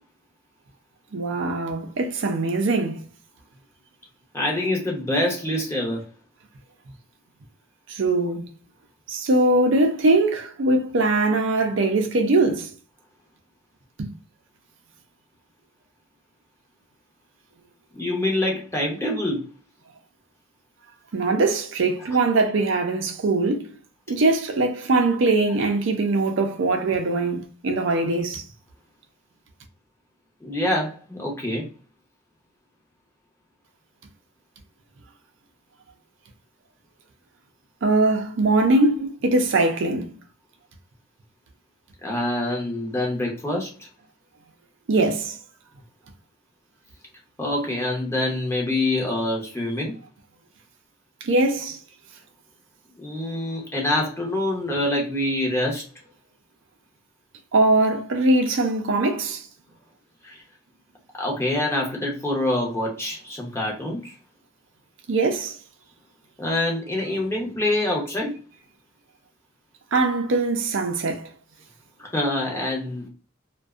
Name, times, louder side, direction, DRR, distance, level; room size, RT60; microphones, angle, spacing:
voice 1, 1.1-3.0 7.9-8.5 9.1-12.7 14.0-14.1 21.1-23.7 24.1-28.4 37.8-40.1 44.9-45.4 51.2-51.8 57.5-59.5 65.1-65.6 69.9-71.3, right 2 dB, 65° right, 0.5 m, -21 dB
voice 2, 4.3-6.0 17.9-19.4 30.4-31.7 39.0-39.1 42.0-43.9 47.4-49.9 53.0-55.8 60.2-60.4 61.2-64.1 66.4-68.4 72.0-73.1, left 1 dB, 15° left, 0.7 m, -25 dB
2.5 x 2.2 x 2.3 m
head